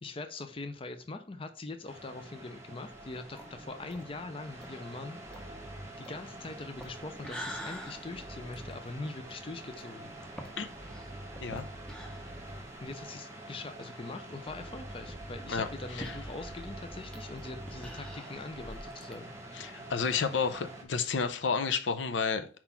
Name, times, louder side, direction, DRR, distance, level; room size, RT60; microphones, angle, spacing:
voice 1, 0.0-5.4 6.0-10.1 12.8-19.3, left 3 dB, 30° left, 0.5 m, -42 dB
sound 1, 1.9-20.8, right 1 dB, 15° right, 1.5 m, -47 dB
sound 2, 2.9-13.1 13.4-13.5 13.8-13.9 14.6-19.1, equal, 5° left, 0.8 m, -47 dB
sound 3, 3.4-6.1 8.1-9.0 9.8-12.8 14.5-18.3, right 1 dB, 35° right, 0.8 m, -48 dB
voice 2, 15.5-16.2 19.5-22.5, left 5 dB, 75° left, 0.6 m, -31 dB
4.4 x 4.1 x 5.6 m
head